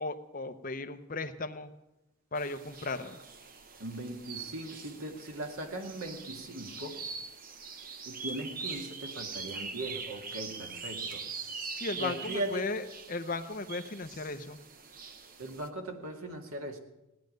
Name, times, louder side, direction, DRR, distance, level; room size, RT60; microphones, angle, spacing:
voice 1, 0.0-1.7 2.3-3.2 11.8-14.6, left 3 dB, 40° left, 8 dB, 0.8 m, -36 dB
sound 1, 2.3-15.7, right 5 dB, 40° right, 0.8 m, -43 dB
voice 2, 3.8-7.0 8.1-11.2 12.0-12.7 15.4-16.8, right 1 dB, 90° right, 3 dB, 2.1 m, -39 dB
17.0 x 10.5 x 6.5 m, 0.98 s
head